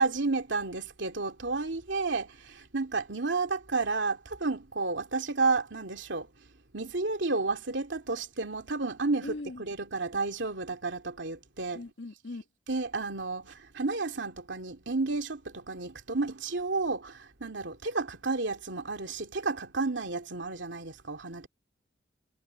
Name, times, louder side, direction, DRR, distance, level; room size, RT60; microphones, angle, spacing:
voice 1, 0.0-6.3 6.7-11.8 12.7-21.5, right 3 dB, 75° right, 2.6 m, -31 dB
voice 2, 9.2-9.6 11.7-12.4, left 2 dB, 65° left, 1.4 m, -40 dB
head